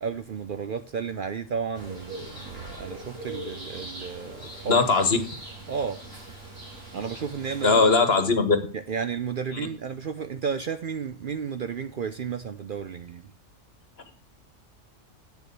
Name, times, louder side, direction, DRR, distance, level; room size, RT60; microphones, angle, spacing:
voice 1, 0.0-5.1 5.7-6.0 6.9-8.0 8.7-13.3, right 6 dB, 55° right, 0.7 m, -33 dB
sound 1, 1.7-7.8, right 2 dB, 85° right, 5.2 m, -41 dB
voice 2, 4.7-5.2 7.6-8.6, left 4 dB, 55° left, 1.6 m, -19 dB
8.5 x 7.0 x 6.8 m
omnidirectional pair, 1.3 m